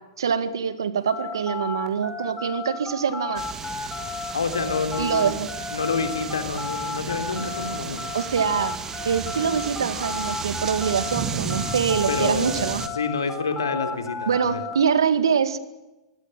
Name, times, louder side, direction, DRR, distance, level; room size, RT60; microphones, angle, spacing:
voice 1, 0.2-3.4 5.0-5.5 8.1-8.7 9.1-12.8 14.3-15.6, right 7 dB, 75° right, 13 dB, 2.0 m, -24 dB
sound 1, 1.1-11.2 11.5-14.7, left 4 dB, 15° left, 5.4 m, -33 dB
sound 2, 3.4-12.9, right 5 dB, 20° right, 2.2 m, -33 dB
voice 2, 4.3-5.4 5.7-8.1 12.1-14.6, left 4 dB, 80° left, 8 dB, 3.4 m, -28 dB
23.5 x 17.0 x 9.0 m, 1.0 s
hypercardioid pair, 105°, 2 cm